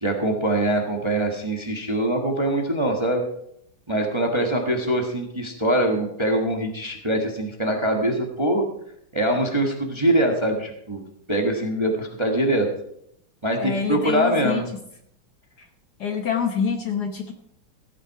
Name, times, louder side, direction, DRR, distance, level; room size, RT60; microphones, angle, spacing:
voice 1, 0.0-3.2 3.9-8.6 9.1-11.0 11.3-12.7 13.4-14.7, right 1 dB, 15° right, 2 dB, 1.2 m, -23 dB
voice 2, 13.6-14.6 16.0-17.3, left 6 dB, 55° left, 5 dB, 1.4 m, -26 dB
15.0 x 8.8 x 4.7 m, 0.73 s
omnidirectional pair, 2.4 m